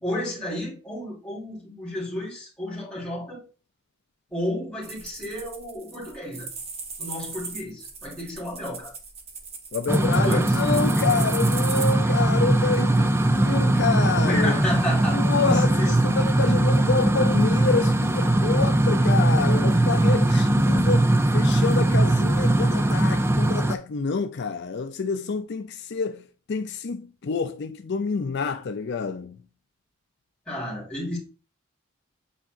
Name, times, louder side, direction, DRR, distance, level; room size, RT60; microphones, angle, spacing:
voice 1, 0.0-3.4 4.3-6.5 7.0-8.9 9.9-10.6 14.3-15.2 15.4-15.9 20.3-20.4 30.5-31.2, left 1 dB, 5° left, 3.3 m, -31 dB
sound 1, 4.8-11.9, right 4 dB, 30° right, 1.1 m, -37 dB
voice 2, 9.7-14.6 15.1-29.4, left 4 dB, 55° left, 0.4 m, -28 dB
sound 2, 9.9-23.7, right 1 dB, 10° right, 0.4 m, -20 dB
8.5 x 4.9 x 2.5 m
head